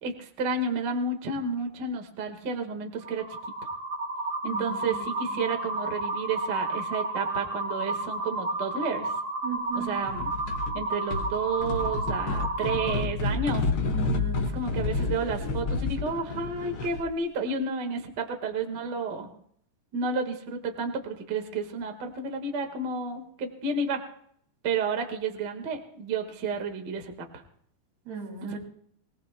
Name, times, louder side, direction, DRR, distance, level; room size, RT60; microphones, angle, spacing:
voice 1, 0.0-3.2 4.4-9.1 9.7-10.3 10.7-13.7 14.5-19.3 19.9-24.0 24.6-27.4 28.4-28.6, right 4 dB, 50° right, 4 dB, 1.3 m, -31 dB
sound 1, 3.0-12.9, right 2 dB, 30° right, 2.1 m, -32 dB
voice 2, 4.5-5.5 9.4-9.9 13.9-14.5 28.1-28.6, right 7 dB, 75° right, 0 dB, 4.7 m, -37 dB
sound 2, 10.1-10.8 11.1-17.1, left 3 dB, 75° left, 1.1 m, -30 dB
24.5 x 18.5 x 2.3 m, 0.65 s
omnidirectional pair, 4.6 m